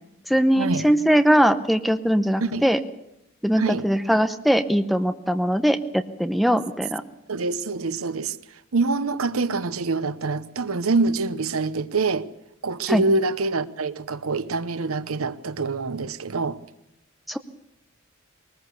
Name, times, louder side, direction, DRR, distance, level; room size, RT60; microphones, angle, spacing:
voice 1, 0.3-2.8 3.4-7.0 12.9-13.0 17.3-17.4, equal, ahead, 0.8 m, -21 dB
voice 2, 3.6-3.9 7.3-8.4 8.7-12.3 12.6-16.6, right 3 dB, 85° right, 0.9 m, -25 dB
21.0 x 19.5 x 6.9 m
head